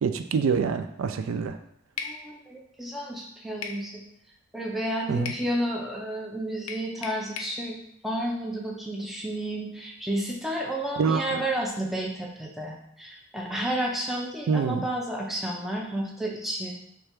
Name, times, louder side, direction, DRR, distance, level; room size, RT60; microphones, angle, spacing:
voice 1, 0.0-1.6 5.1-5.3 11.0-11.4 14.5-14.9, right 5 dB, 75° right, 8 dB, 0.3 m, -26 dB
sound 1, 2.0-2.2 3.6-3.8 5.3-5.5 6.7-7.6, left 6 dB, 85° left, 0.4 m, -36 dB
voice 2, 2.0-4.1 4.5-7.8 8.0-16.7, right 1 dB, ahead, -2 dB, 0.5 m, -31 dB
3.3 x 2.4 x 4.3 m, 0.71 s
head